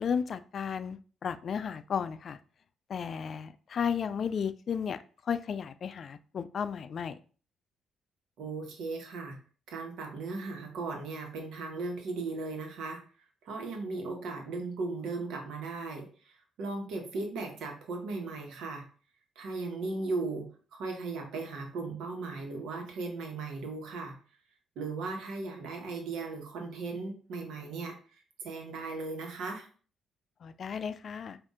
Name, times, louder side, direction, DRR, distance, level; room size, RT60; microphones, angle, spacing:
voice 1, 0.0-2.4 2.9-7.2 30.4-31.4, left 7 dB, 55° left, 13 dB, 0.3 m, -34 dB
voice 2, 8.4-9.4 9.7-13.0 13.4-18.9 19.4-24.2 24.7-28.0 28.4-29.7, right 3 dB, 80° right, 3 dB, 1.2 m, -37 dB
5.3 x 2.6 x 3.6 m, 0.40 s
cardioid pair, 90°, 0 cm